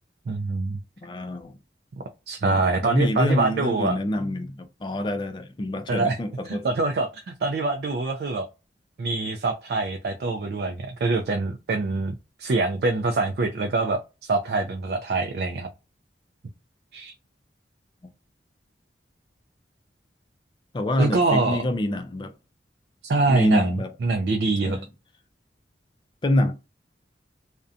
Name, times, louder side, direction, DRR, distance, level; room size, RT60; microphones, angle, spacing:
voice 1, 0.3-0.8 2.3-4.0 5.9-6.2 6.5-8.5 9.0-15.7 16.9-17.1 21.0-21.6 23.1-24.8, right 3 dB, 60° right, 0.3 m, -25 dB
voice 2, 1.0-1.6 2.4-6.7 20.7-22.3 23.3-23.9 24.6-24.9 26.2-26.5, left 1 dB, 25° left, 0.3 m, -26 dB
2.4 x 2.1 x 2.6 m
head